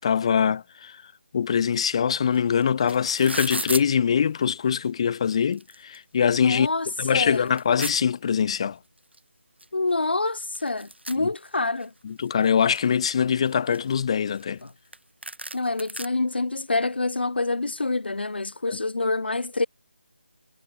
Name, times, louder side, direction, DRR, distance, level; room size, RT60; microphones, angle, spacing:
voice 1, 0.0-0.9 1.3-6.7 7.0-8.8 11.2-11.3 12.0-14.6 18.7-18.8, left 7 dB, 30° left, 0.6 m, -23 dB
sound 1, 2.3-2.4 2.6-3.8 4.7-4.8 5.2-6.0 6.4-6.5 6.9-8.0 9.1-9.2 9.6-9.7 9.9-11.9 12.3-12.9 13.4-14.7 14.9-15.0 15.2-16.1, right 1 dB, 85° right, 2.0 m, -35 dB
voice 2, 6.4-7.5 9.7-11.9 14.6-14.7 15.5-19.7, left 3 dB, 70° left, 1.7 m, -27 dB
figure-of-eight pair, 155°, 6 cm